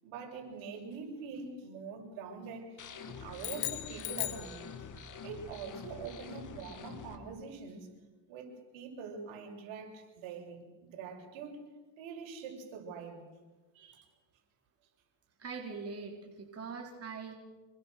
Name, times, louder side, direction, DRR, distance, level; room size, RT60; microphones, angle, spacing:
voice 1, 0.0-2.8 3.1-4.7 5.2-7.9 8.3-11.6 12.0-13.2 13.7-14.0, right 5 dB, 70° right, 2 dB, 7.2 m, -44 dB
sound 1, 2.8-7.2, left 6 dB, 35° left, 3.0 m, -47 dB
sound 2, 3.4-5.2, left 16 dB, 70° left, 2.0 m, -38 dB
voice 2, 15.4-17.3, right 5 dB, 30° right, 1 dB, 4.1 m, -42 dB
27.0 x 23.0 x 6.9 m, 1.2 s
supercardioid pair, 105°, 50 cm